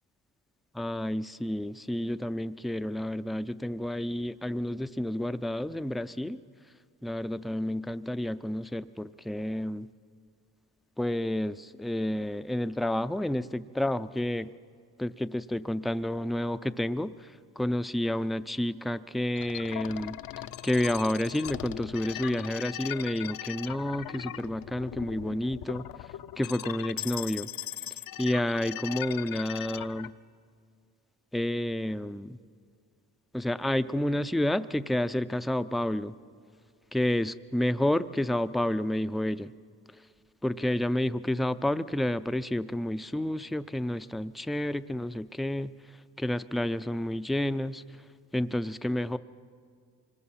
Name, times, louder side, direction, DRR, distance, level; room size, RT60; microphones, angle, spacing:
voice 1, 0.7-6.4 7.0-9.9 11.0-14.5 15.0-17.1 17.6-20.2 20.6-25.8 26.4-27.5 28.2-30.1 31.3-32.4 33.3-36.2 36.9-39.5 40.4-45.7 46.2-47.8 48.3-49.2, left 1 dB, ahead, 12 dB, 0.4 m, -30 dB
sound 1, 19.3-30.1, left 12 dB, 55° left, 0.7 m, -39 dB
25.0 x 20.0 x 5.7 m, 2.1 s
supercardioid pair, 65°, 43 cm